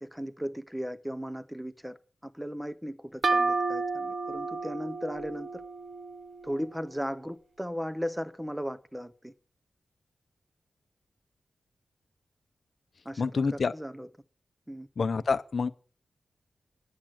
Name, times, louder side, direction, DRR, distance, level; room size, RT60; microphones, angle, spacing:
voice 1, 0.0-2.0 2.2-5.6 6.4-9.3 13.0-14.1 14.7-14.9, equal, 5° right, 0.5 m, -36 dB
sound 1, 3.2-6.8, right 3 dB, 40° right, 0.7 m, -31 dB
voice 2, 13.2-13.7 15.0-15.7, left 4 dB, 45° left, 0.6 m, -27 dB
10.5 x 7.4 x 7.6 m
wide cardioid pair, 175°, 0 cm